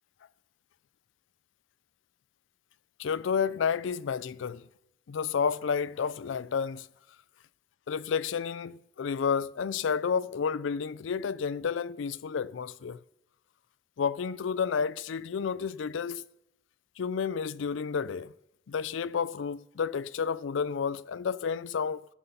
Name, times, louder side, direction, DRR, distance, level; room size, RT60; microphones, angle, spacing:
voice 1, 3.0-4.6 5.1-6.9 7.9-13.0 14.0-16.2 17.0-18.3 18.7-22.1, left 6 dB, 70° left, 0.4 m, -31 dB
14.5 x 7.8 x 5.6 m
head